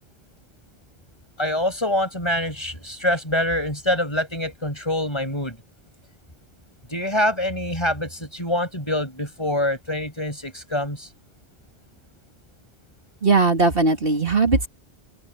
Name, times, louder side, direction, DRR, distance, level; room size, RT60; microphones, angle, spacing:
voice 1, 1.4-5.6 6.9-11.1, left 1 dB, 25° left, 7.2 m, -25 dB
voice 2, 13.2-14.7, right 3 dB, 60° right, 2.7 m, -19 dB
open air
omnidirectional pair, 1.1 m